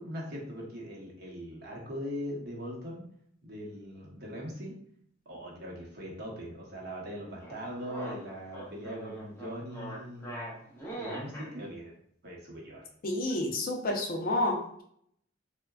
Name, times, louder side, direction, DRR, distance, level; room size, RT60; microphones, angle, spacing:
voice 1, 0.0-3.0 3.4-4.8 5.3-10.6 11.0-11.9 12.2-12.8, equal, 55° right, -3 dB, 0.8 m, -40 dB
sound 1, 7.4-11.5, right 1 dB, 15° left, 0.7 m, -41 dB
voice 2, 13.0-14.8, left 1 dB, 50° left, 2 dB, 0.5 m, -30 dB
3.6 x 2.1 x 2.2 m, 0.66 s
head